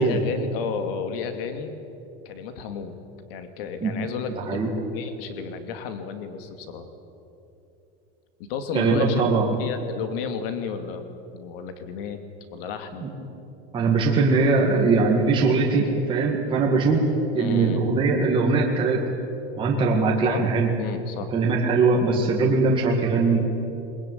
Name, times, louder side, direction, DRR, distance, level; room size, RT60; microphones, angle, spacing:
voice 1, 0.0-1.7 2.2-2.9 3.3-6.9 8.5-9.3 9.6-11.1 11.3-12.2 12.5-13.1 17.4-17.8 20.2-20.4 20.8-21.3, left 6 dB, 55° left, 8 dB, 2.6 m, -32 dB
voice 2, 8.7-9.5 13.0-13.1 13.7-17.0 17.3-19.0 19.6-20.7 21.3-23.5, right 4 dB, 15° right, -2 dB, 2.0 m, -21 dB
22.0 x 21.0 x 9.4 m, 2.9 s
supercardioid pair, 180°, 33 cm